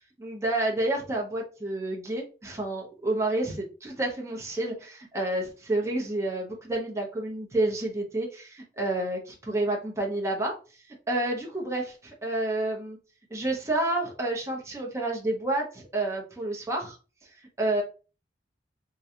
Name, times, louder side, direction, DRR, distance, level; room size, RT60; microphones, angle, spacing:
voice 1, 0.2-10.6 11.1-13.0 13.3-17.0 17.6-17.8, right 2 dB, 15° right, -1 dB, 0.9 m, -29 dB
3.8 x 2.3 x 2.9 m, 0.34 s
head